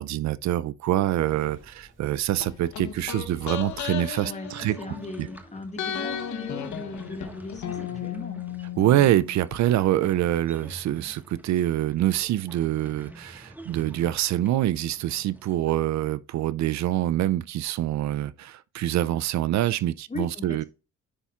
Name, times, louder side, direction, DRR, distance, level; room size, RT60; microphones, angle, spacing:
voice 1, 0.0-5.3 8.8-20.6, right 13 dB, 65° right, 0.4 m, -25 dB
sound 1, 1.0-4.0, right 1 dB, 40° right, 2.5 m, -52 dB
sound 2, 2.4-5.4 5.8-9.6 9.8-9.9, left 9 dB, 70° left, 1.0 m, -35 dB
voice 2, 4.2-8.4 20.1-20.6, left 3 dB, 25° left, 1.7 m, -38 dB
sound 3, 4.4-15.8, right 1 dB, 5° right, 1.4 m, -48 dB
10.0 x 4.1 x 2.4 m
cardioid pair, 90°, 30 cm